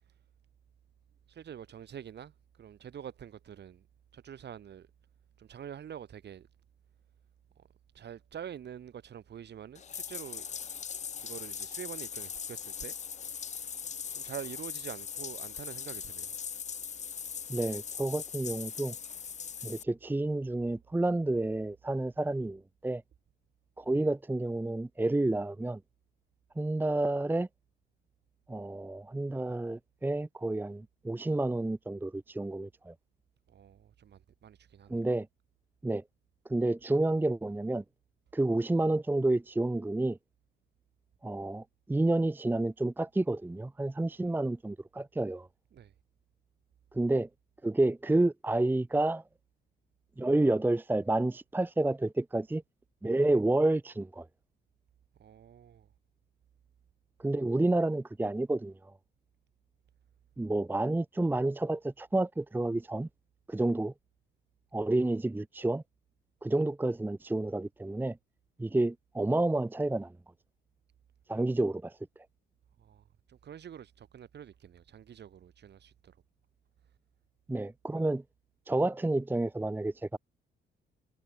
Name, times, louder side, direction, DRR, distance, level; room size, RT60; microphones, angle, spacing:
voice 1, 1.3-2.3 2.6-3.8 4.1-4.9 5.4-6.5 7.9-10.5 11.2-12.9 14.2-16.3 33.5-35.0 45.7-45.9 55.2-55.9 72.8-73.0 73.3-76.1, right 9 dB, 60° right, 3.7 m, -46 dB
Bathtub (filling or washing), 9.7-19.8, left 7 dB, 35° left, 0.7 m, -40 dB
voice 2, 17.5-18.9 19.6-23.0 23.8-25.8 26.6-27.5 28.5-32.9 34.9-35.3 35.8-36.0 36.5-37.8 38.3-40.2 41.2-45.5 46.9-47.3 47.6-49.2 50.2-52.6 53.0-54.3 57.2-58.9 60.4-63.1 63.5-63.9 64.7-65.8 66.4-68.2 68.6-70.1 71.3-72.0 77.5-78.2 78.7-80.2, right 2 dB, 10° right, 0.8 m, -29 dB
cardioid pair, 90°, 20 cm